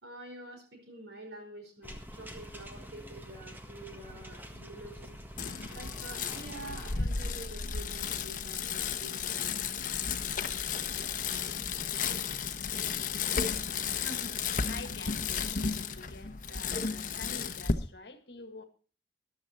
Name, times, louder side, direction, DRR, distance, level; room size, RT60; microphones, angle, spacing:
voice 1, 0.0-5.2 5.7-9.5, right 1 dB, 70° right, 4.8 m, -47 dB
sound 1, 1.8-7.0, equal, 10° right, 1.6 m, -46 dB
Bicycle, 5.4-17.7, left 6 dB, 50° left, 1.0 m, -33 dB
voice 2, 13.9-18.6, left 3 dB, 65° left, 1.7 m, -47 dB
14.0 x 11.0 x 4.3 m
head